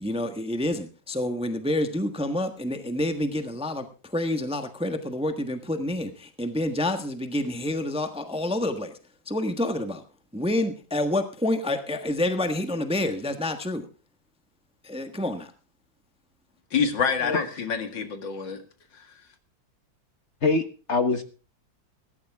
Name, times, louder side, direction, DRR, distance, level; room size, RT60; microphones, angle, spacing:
voice 1, 0.0-3.8 4.1-8.9 9.3-10.0 10.3-13.8 14.8-15.5, left 1 dB, 5° right, 7 dB, 1.1 m, -28 dB
voice 2, 16.7-18.6 19.0-19.1, left 6 dB, 80° left, 7 dB, 2.8 m, -27 dB
voice 3, 20.4-21.2, left 3 dB, 40° left, 9 dB, 1.4 m, -24 dB
16.5 x 14.0 x 3.6 m, 0.35 s
omnidirectional pair, 2.0 m